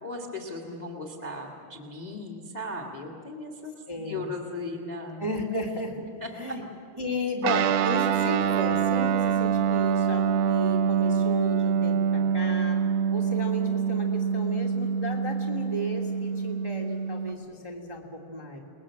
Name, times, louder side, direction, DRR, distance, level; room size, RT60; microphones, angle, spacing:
voice 1, 0.0-5.3 6.2-6.5, left 2 dB, 55° left, 3 dB, 0.4 m, -37 dB
voice 2, 3.9-4.2 5.2-6.0 6.4-6.6 7.0-12.8 13.1-18.6, equal, 10° right, -1 dB, 1.5 m, -34 dB
Guitar, 7.4-17.3, right 7 dB, 75° right, 2.5 m, -25 dB
29.0 x 20.5 x 7.5 m, 2.4 s
omnidirectional pair, 4.7 m